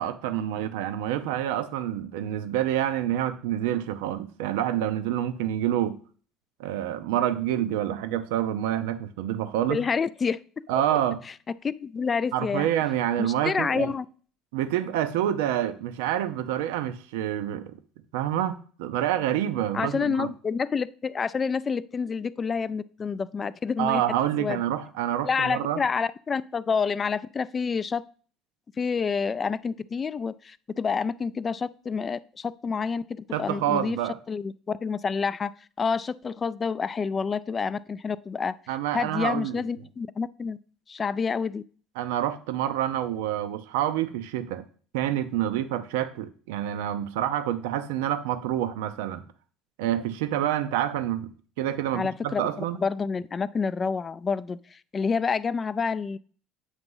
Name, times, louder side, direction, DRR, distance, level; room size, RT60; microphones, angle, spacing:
voice 1, 0.0-6.0 6.6-9.8 10.7-11.2 12.3-13.9 14.5-17.8 18.1-20.3 23.8-25.8 33.3-34.2 38.7-39.6 42.0-44.6 44.9-49.2 49.8-51.3 51.6-52.8, right 11 dB, 85° right, 0.5 m, -27 dB
voice 2, 9.7-10.4 11.6-12.7 13.2-14.1 19.7-24.0 24.4-24.6 25.2-28.0 28.8-34.0 34.3-35.5 35.8-38.5 38.9-40.6 40.9-41.6 51.9-52.4 52.7-56.2, left 5 dB, 30° left, 0.3 m, -28 dB
8.0 x 2.9 x 5.4 m
supercardioid pair, 90°, 0 cm